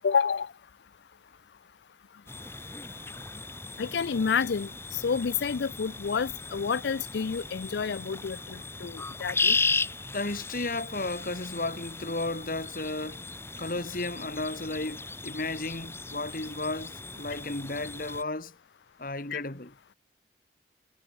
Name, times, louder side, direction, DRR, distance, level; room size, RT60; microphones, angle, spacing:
voice 1, 0.0-0.5 3.8-9.6 19.3-19.4, left 6 dB, 80° left, 0.5 m, -29 dB
sound 1, 2.3-18.2, left 3 dB, 15° left, 1.7 m, -35 dB
voice 2, 10.1-13.3 13.6-18.6 19.0-19.7, left 2 dB, 50° left, 2.1 m, -34 dB
head